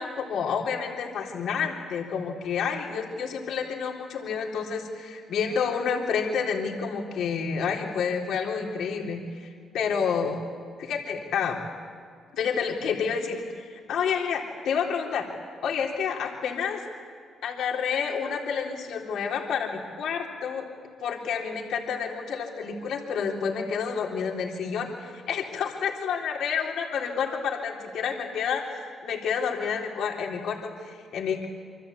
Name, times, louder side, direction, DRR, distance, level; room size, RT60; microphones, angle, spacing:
voice 1, 0.0-10.4 10.8-11.6 12.3-15.3 15.6-16.8 17.4-20.7 21.0-31.5, left 6 dB, 75° left, 0 dB, 3.6 m, -29 dB
27.0 x 25.0 x 8.4 m, 2.2 s
cardioid pair, 90°, 0 cm